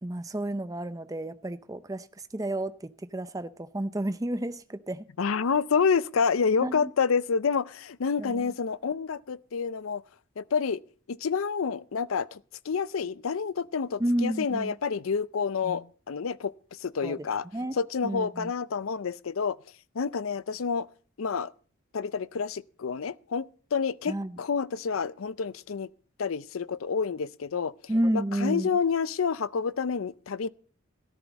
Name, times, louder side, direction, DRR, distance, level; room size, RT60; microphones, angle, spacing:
voice 1, 0.0-2.1 2.3-5.1 6.6-6.9 8.2-8.5 14.0-14.8 17.0-17.3 17.5-17.8 18.0-18.5 24.1-24.4 27.9-28.7, right 1 dB, 15° right, 0.5 m, -31 dB
voice 2, 5.2-10.0 10.4-10.8 11.1-12.4 12.6-17.5 17.8-19.6 19.9-20.9 21.2-21.5 21.9-25.9 26.2-27.7 28.1-30.5, left 5 dB, 85° left, 0.5 m, -28 dB
14.0 x 13.0 x 4.1 m
head